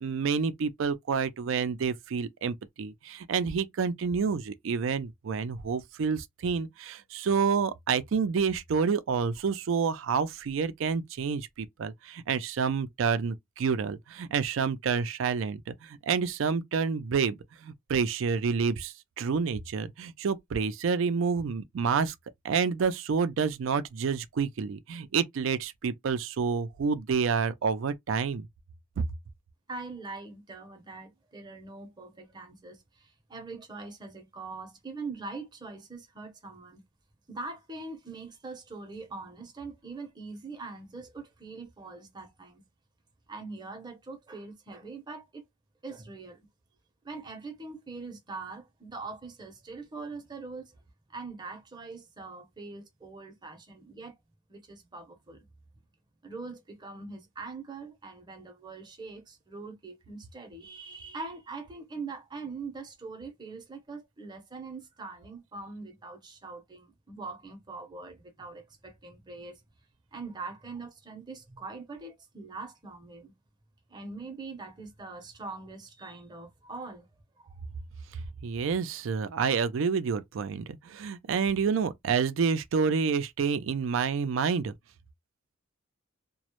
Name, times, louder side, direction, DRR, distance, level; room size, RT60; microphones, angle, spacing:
voice 1, 0.0-22.1 22.4-28.5 29.0-29.1 78.4-84.7, right 5 dB, 65° right, 0.4 m, -28 dB
voice 2, 29.7-36.8 37.3-42.6 43.3-45.5 45.8-46.5 47.0-50.8 51.1-54.2 54.5-55.5 56.2-69.6 70.1-73.3 73.9-77.1 77.4-77.6, right 3 dB, 20° right, 0.6 m, -42 dB
2.1 x 2.0 x 2.9 m
head